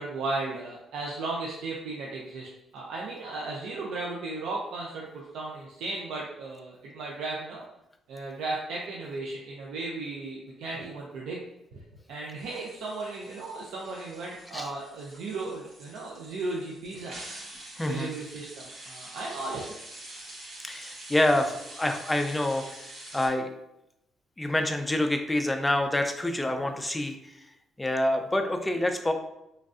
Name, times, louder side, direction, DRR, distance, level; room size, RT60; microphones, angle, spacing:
voice 1, 0.0-7.6 8.1-11.4 11.7-11.8 12.1-17.2 17.8-19.7, right 3 dB, 85° right, -3 dB, 0.5 m, -35 dB
sound 1, 12.4-23.3, right 1 dB, 65° right, 1.0 m, -46 dB
voice 2, 17.8-18.1 20.6-22.8 23.1-23.5 24.4-27.5 27.8-29.1, left 1 dB, 15° left, 5 dB, 0.4 m, -27 dB
3.1 x 2.6 x 2.4 m, 0.84 s
cardioid pair, 90°, 0 cm